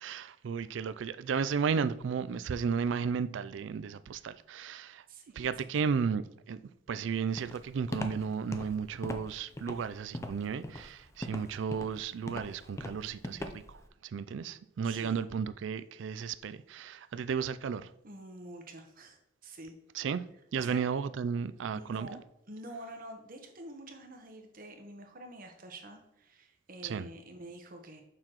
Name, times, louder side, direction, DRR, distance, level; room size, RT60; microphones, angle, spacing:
voice 1, 0.0-5.0 5.4-6.6 6.9-17.9 19.9-20.2 20.5-22.2 26.8-27.1, right 6 dB, 70° right, 0.3 m, -34 dB
voice 2, 5.1-5.5 5.8-5.9 14.8-15.2 18.0-20.1 20.6-20.9 21.7-22.2 22.5-28.0, right 1 dB, 45° right, 1.0 m, -47 dB
Walk footsteps, 7.4-13.8, left 1 dB, 15° left, 0.4 m, -40 dB
6.7 x 5.7 x 3.0 m
head